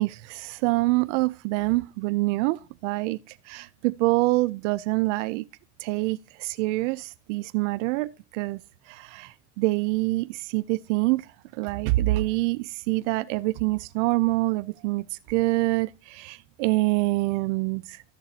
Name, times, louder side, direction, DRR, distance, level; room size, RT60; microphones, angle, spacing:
voice 1, 0.0-5.4 5.8-8.6 8.9-18.0, right 21 dB, 70° right, 0.5 m, -26 dB
13.5 x 6.9 x 2.8 m
supercardioid pair, 140°, 37 cm